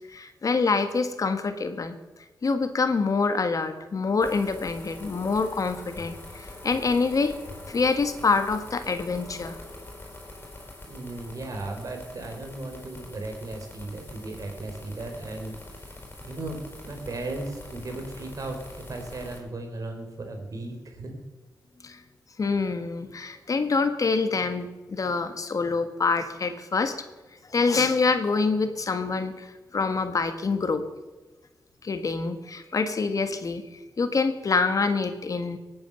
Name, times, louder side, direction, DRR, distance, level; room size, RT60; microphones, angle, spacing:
voice 1, 0.0-2.0 2.4-7.3 7.7-9.6 21.8-22.0 22.4-27.0 27.5-30.8 31.8-33.6 34.0-35.6, left 4 dB, 55° left, 8 dB, 1.6 m, -26 dB
sound 1, 4.2-19.4, left 1 dB, 30° left, 5.5 m, -44 dB
voice 2, 10.9-21.2, right 2 dB, 55° right, 4 dB, 3.9 m, -36 dB
19.0 x 8.9 x 7.0 m, 1.2 s
cardioid pair, 60°, 7 cm